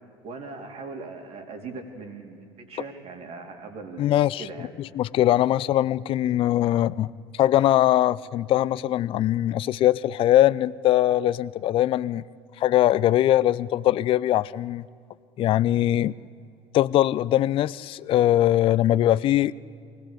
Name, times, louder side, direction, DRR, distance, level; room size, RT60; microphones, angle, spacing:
voice 1, 0.2-4.7, right 3 dB, 50° right, 4 dB, 3.3 m, -40 dB
voice 2, 4.0-4.4 4.8-7.1 7.3-12.2 12.6-14.8 15.4-16.1 16.7-19.5, left 13 dB, 40° left, 19 dB, 0.4 m, -21 dB
23.5 x 16.5 x 8.3 m, 2.5 s
hypercardioid pair, 65°, 14 cm